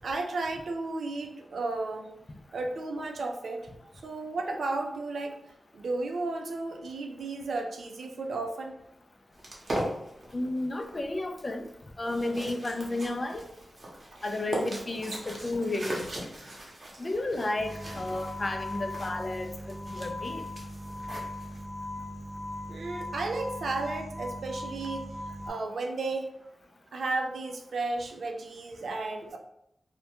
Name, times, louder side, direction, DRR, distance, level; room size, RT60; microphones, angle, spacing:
voice 1, 0.0-2.1 2.5-3.6 4.0-5.4 5.7-8.8 14.1-14.2 22.7-26.3 26.9-29.4, right 3 dB, 85° right, 2 dB, 0.3 m, -33 dB
sound 1, 9.4-21.6, right 1 dB, 50° right, 0.7 m, -39 dB
voice 2, 10.3-11.6 12.0-13.4 14.2-16.2 17.0-20.4, left 2 dB, 40° left, 5 dB, 0.3 m, -32 dB
sound 2, 17.5-25.5, left 1 dB, 20° left, 0.8 m, -39 dB
2.2 x 2.1 x 2.8 m, 0.80 s
cardioid pair, 65°, 0 cm